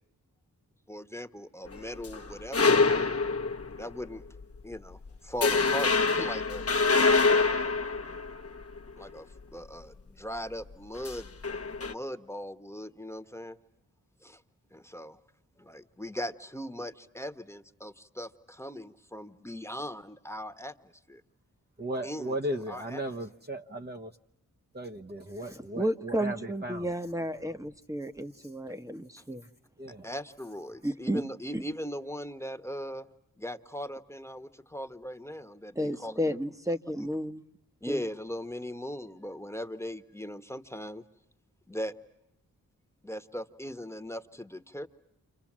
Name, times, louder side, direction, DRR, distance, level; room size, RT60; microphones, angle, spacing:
voice 1, 0.9-2.8 3.8-4.4 4.6-6.7 9.0-11.4 11.8-13.6 14.2-14.4 14.7-15.2 15.6-21.2 22.0-23.0 30.0-33.1 33.4-36.4 37.0-37.1 37.8-41.0 41.7-41.9 43.0-44.9, equal, 5° left, 1.4 m, -39 dB
sound 1, 1.7-3.9 4.4-4.6 4.9-5.1 5.4-8.9 11.0-11.9, left 4 dB, 40° left, 1.1 m, -25 dB
voice 2, 21.8-24.1 24.7-26.9 28.3-28.5 29.8-30.1, right 1 dB, 30° right, 1.1 m, -36 dB
voice 3, 25.5-29.5 30.8-31.2 31.5-31.6 35.7-37.4 37.9-38.0, equal, 10° right, 1.2 m, -32 dB
29.5 x 26.5 x 7.5 m
cardioid pair, 40°, 35 cm